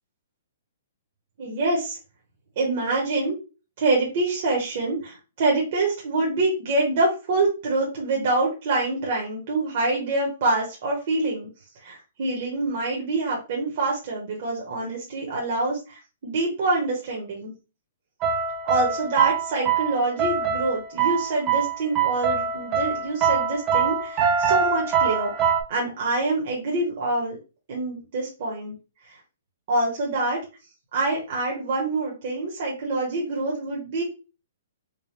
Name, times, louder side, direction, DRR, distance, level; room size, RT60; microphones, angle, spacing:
voice 1, 1.4-2.0 2.6-3.4 3.8-11.5 11.8-17.5 18.6-25.3 25.7-27.4 27.7-28.7 29.0-29.2 29.7-30.4 30.9-34.0, right 2 dB, 35° right, -3 dB, 1.0 m, -26 dB
sound 1, 18.2-25.6, right 6 dB, 15° right, 0.4 m, -24 dB
4.6 x 2.2 x 3.3 m, 0.31 s
hypercardioid pair, 180°, 0 cm